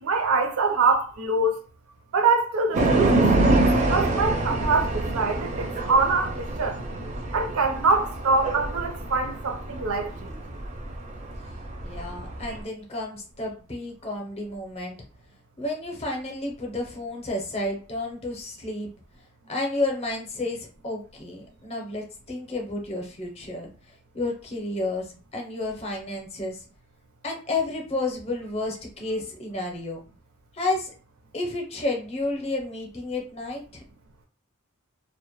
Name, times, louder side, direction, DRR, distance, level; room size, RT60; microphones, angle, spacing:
voice 1, 0.0-1.6 2.1-6.8 7.3-10.4, right 3 dB, 85° right, 0.5 m, -24 dB
sound 1, 2.7-12.6, right 2 dB, 35° right, 0.4 m, -25 dB
voice 2, 11.8-15.0 15.6-18.9 19.5-23.7 24.1-26.6 27.2-30.0 30.5-30.9 31.3-33.8, left 2 dB, 30° left, 0.6 m, -31 dB
2.1 x 2.0 x 3.0 m
head